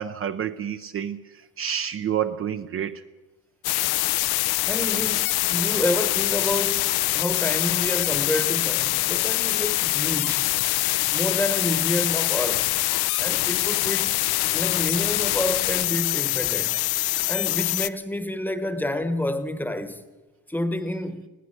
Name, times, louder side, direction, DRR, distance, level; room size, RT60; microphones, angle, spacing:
voice 1, 0.0-3.0, right 9 dB, 35° right, 0.6 m, -29 dB
sound 1, 3.6-17.9, left 19 dB, 80° left, 0.7 m, -24 dB
voice 2, 4.7-10.5 11.1-12.8 13.2-14.2 14.5-16.8 17.3-20.0 20.5-21.3, left 1 dB, 5° left, 1.1 m, -29 dB
21.0 x 16.5 x 7.9 m
cardioid pair, 165°, 37 cm